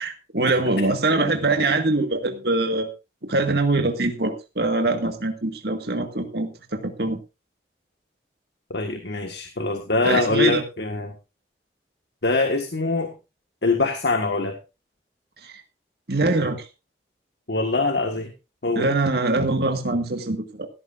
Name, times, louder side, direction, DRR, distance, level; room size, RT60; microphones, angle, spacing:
voice 1, 0.0-2.9 3.3-7.2 10.0-10.6 15.4-15.5 16.1-16.6 18.7-20.7, right 2 dB, 60° right, 4 dB, 1.8 m, -23 dB
voice 2, 8.7-11.1 12.2-13.1 13.6-14.5 17.5-18.3 18.6-18.9, left 3 dB, 70° left, 5 dB, 1.6 m, -23 dB
16.0 x 14.5 x 2.6 m, 0.28 s
head